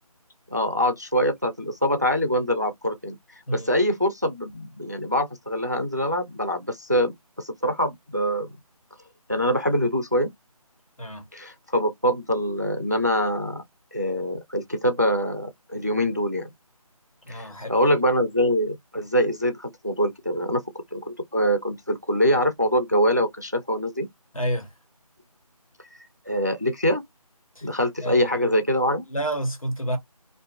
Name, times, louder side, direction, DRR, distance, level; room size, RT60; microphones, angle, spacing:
voice 1, 0.5-3.2 3.5-8.5 9.3-10.3 11.3-13.6 13.9-16.5 17.3-20.6 20.9-24.1 26.3-27.0 27.6-29.0, equal, 30° right, 0.4 m, -24 dB
voice 2, 17.3-17.8 24.3-24.7 27.6-27.7 28.0-28.3 29.1-30.0, right 1 dB, 65° left, 1.3 m, -29 dB
2.7 x 2.5 x 2.3 m
figure-of-eight pair, 165°, 19 cm